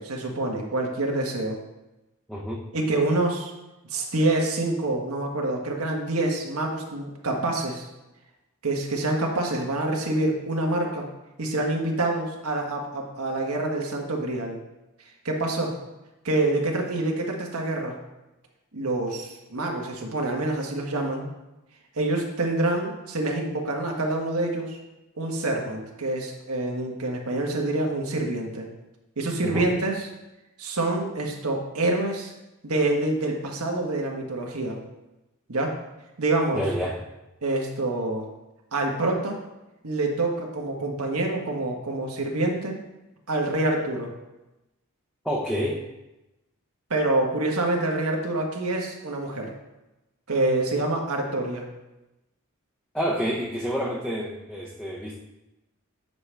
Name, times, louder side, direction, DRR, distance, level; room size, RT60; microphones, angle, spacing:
voice 1, 0.0-1.6 2.7-3.5 3.9-7.9 8.6-11.1 11.4-14.6 15.2-15.7 16.2-17.9 18.7-21.3 21.9-24.8 25.2-28.7 29.2-30.0 30.6-32.3 32.6-34.8 35.5-35.8 36.2-36.6 37.4-38.2 38.7-39.4 39.8-42.8 43.3-44.1 46.9-49.5 50.3-51.6, right 2 dB, 85° right, 1 dB, 1.5 m, -26 dB
voice 2, 2.3-2.6 29.4-29.7 36.6-37.1 45.2-45.9 52.9-55.2, equal, 5° left, -4 dB, 0.7 m, -28 dB
8.6 x 6.9 x 3.4 m, 0.99 s
head